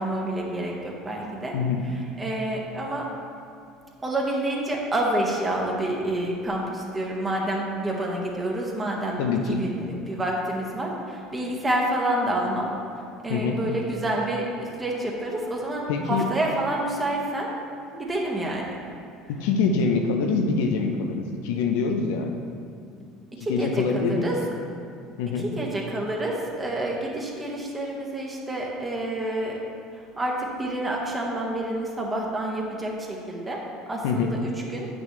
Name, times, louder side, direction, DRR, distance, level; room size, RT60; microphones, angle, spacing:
voice 1, 0.0-1.6 1.9-3.1 4.0-12.7 13.2-17.5 17.9-18.8 23.3-24.4 25.3-29.6 29.9-33.6 33.9-34.9, right 1 dB, 20° right, -2 dB, 1.6 m, -28 dB
voice 2, 9.2-9.6 13.3-13.6 15.9-16.2 19.3-22.3 23.4-24.3 25.2-25.5 34.0-34.3, left 5 dB, 75° left, 4 dB, 0.7 m, -25 dB
8.7 x 6.1 x 3.2 m, 2.6 s
hypercardioid pair, 80°, 0 cm